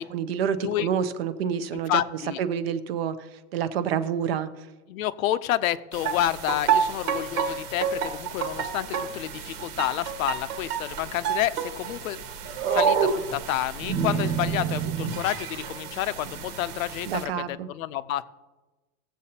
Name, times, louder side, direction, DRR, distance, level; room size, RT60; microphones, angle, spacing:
voice 1, 0.0-2.0 2.4-4.5 17.1-17.7, right 8 dB, 45° right, 12 dB, 0.5 m, -28 dB
voice 2, 1.9-2.4 4.9-12.2 12.7-18.2, left 13 dB, 65° left, 15 dB, 0.6 m, -29 dB
sound 1, 5.9-17.2, right 6 dB, 75° right, 1.5 m, -29 dB
17.0 x 7.6 x 2.8 m, 1.1 s
supercardioid pair, 165°, 46 cm